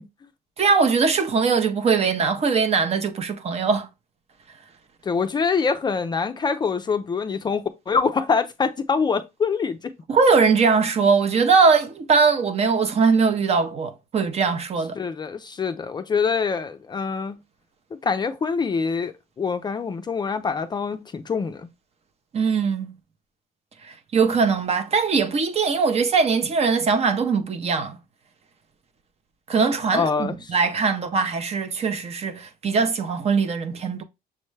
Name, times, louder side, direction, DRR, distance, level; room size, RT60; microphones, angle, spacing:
voice 1, 0.6-3.9 10.1-15.0 22.3-23.0 23.8-28.0 29.5-34.0, right 5 dB, 40° right, 0.6 m, -21 dB
voice 2, 5.0-9.9 15.0-17.4 18.0-21.7 29.9-30.4, left 5 dB, 25° left, 0.4 m, -25 dB
6.4 x 2.1 x 3.1 m
cardioid pair, 110°, 17 cm